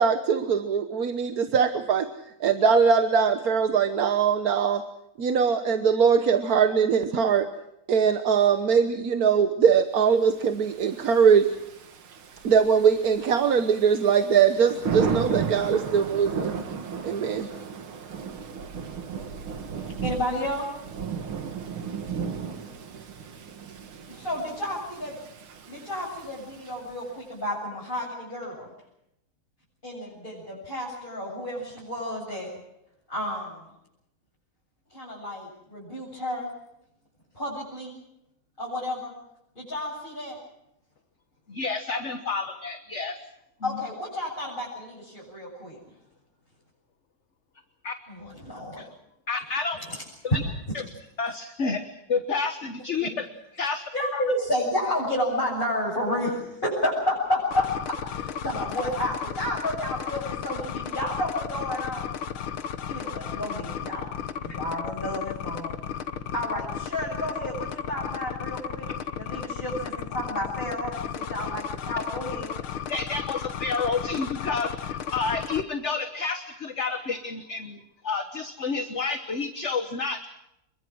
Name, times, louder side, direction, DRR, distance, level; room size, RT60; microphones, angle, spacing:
voice 1, 0.0-2.1 2.4-4.8 5.2-7.5 7.9-11.5 12.4-16.5 17.0-17.5, right 6 dB, 50° right, 8 dB, 1.4 m, -21 dB
Thunder / Rain, 10.5-27.1, right 6 dB, 85° right, 2.7 m, -35 dB
voice 2, 19.8-20.7 24.1-25.1 25.7-28.7 29.8-32.5 33.1-33.7 34.9-36.5 37.3-38.0 38.6-39.1 39.5-40.4 43.6-45.8 48.1-48.8 49.9-50.0 50.3-50.4 53.0-53.1 53.9-62.1 62.9-64.1 64.4-65.8 66.3-68.9 69.1-72.5, left 1 dB, 25° left, -6 dB, 7.8 m, -31 dB
voice 3, 41.5-43.2 43.6-43.8 47.8-47.9 48.8-48.9 49.3-49.8 50.3-50.4 50.7-50.8 51.2-53.2 53.6-53.8 54.1-54.2 72.9-80.3, left 4 dB, 40° left, 8 dB, 1.4 m, -30 dB
sound 1, 57.5-75.6, left 8 dB, 85° left, 2.0 m, -34 dB
26.5 x 23.0 x 6.3 m, 0.82 s
omnidirectional pair, 2.2 m